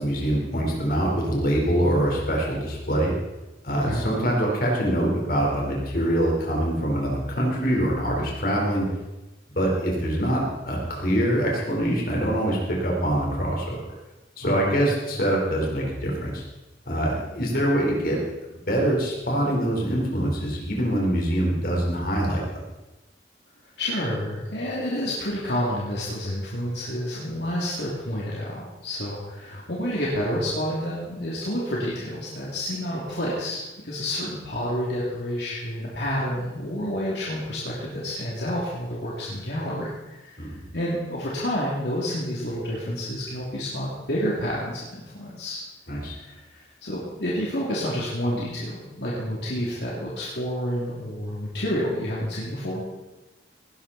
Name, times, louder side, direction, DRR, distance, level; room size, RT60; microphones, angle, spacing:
voice 1, 0.0-3.1 3.6-8.8 9.5-13.8 14.4-16.4 16.9-18.2 18.5-22.4 40.4-40.6 45.9-46.1, right 1 dB, 55° left, -2 dB, 4.4 m, -24 dB
voice 2, 3.7-4.0 14.4-14.8 23.8-40.5 40.7-45.6 46.1-53.1, equal, 70° left, -6 dB, 3.0 m, -29 dB
18.5 x 11.5 x 4.3 m, 1.1 s
head